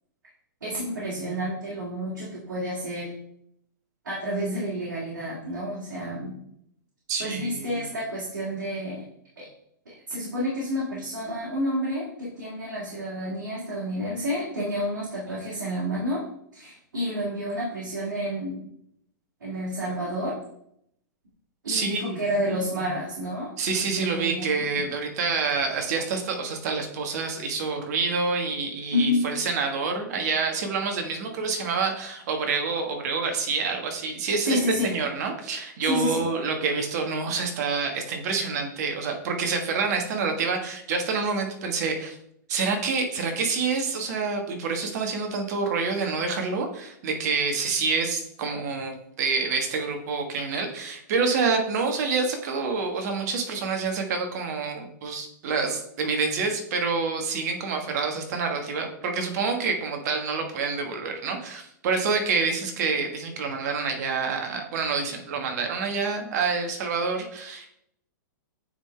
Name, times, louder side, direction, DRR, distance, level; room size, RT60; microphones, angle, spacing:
voice 1, 0.6-3.1 4.0-6.3 7.2-9.0 9.4-9.5 9.9-16.2 16.5-18.7 19.4-20.4 21.6-23.5 24.0-24.7 28.9-29.2 34.4-34.9 35.8-36.3, equal, 85° right, -5 dB, 2.0 m, -29 dB
voice 2, 7.1-7.8 21.7-22.2 23.6-42.2 42.5-67.7, right 4 dB, 55° right, 4 dB, 1.3 m, -27 dB
8.7 x 3.8 x 3.3 m, 0.73 s
hypercardioid pair, 120°, 10 cm